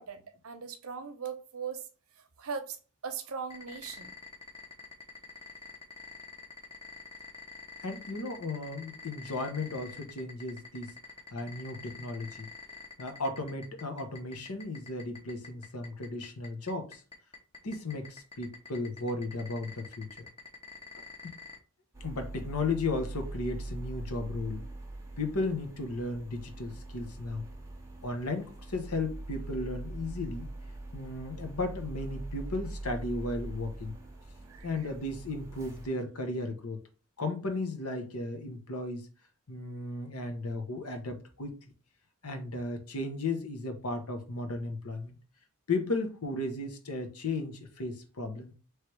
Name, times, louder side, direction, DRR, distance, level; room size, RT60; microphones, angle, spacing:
voice 1, 0.0-1.9 2.2-2.8 3.0-4.1 34.5-34.9, right 6 dB, 70° right, 0.8 m, -39 dB
sound 1, 3.5-21.6, left 4 dB, 25° left, 0.9 m, -46 dB
voice 2, 7.8-11.0 11.3-12.5 13.0-17.0 17.6-20.3 21.2-21.3 22.0-24.6 25.2-27.4 28.0-30.5 30.9-33.9 34.6-36.8 37.2-39.1 39.5-41.5 42.2-45.2 45.7-48.5, left 2 dB, 75° left, 1.0 m, -35 dB
sound 2, 21.9-35.9, right 2 dB, 15° right, 0.8 m, -42 dB
3.3 x 3.2 x 4.5 m
head